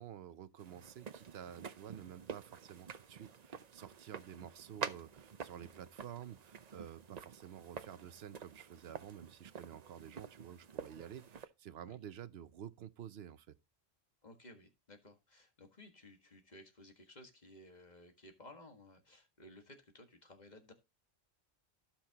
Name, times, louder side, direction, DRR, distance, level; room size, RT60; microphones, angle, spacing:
voice 1, 0.0-13.6, right 9 dB, 70° right, 0.9 m, -51 dB
sound 1, 0.6-11.5, right 6 dB, 45° right, 0.7 m, -48 dB
voice 2, 14.2-20.7, left 1 dB, 40° left, 1.8 m, -57 dB
16.5 x 5.9 x 2.9 m
omnidirectional pair, 1.1 m